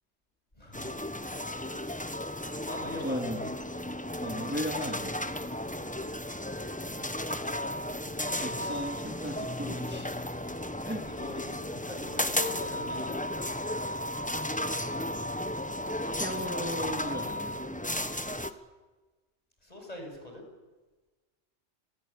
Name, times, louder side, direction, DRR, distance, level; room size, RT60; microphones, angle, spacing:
voice 1, 0.6-0.9 2.6-3.5 11.0-13.2 19.6-20.4, left 2 dB, 30° left, 2 dB, 7.7 m, -41 dB
sound 1, 0.7-18.5, left 1 dB, 5° left, 1.1 m, -34 dB
voice 2, 3.0-3.4 4.2-5.2 8.4-10.2 10.8-11.0 16.2-17.6, equal, 10° right, 3 dB, 2.2 m, -36 dB
29.0 x 21.0 x 8.7 m, 1.3 s
omnidirectional pair, 1.2 m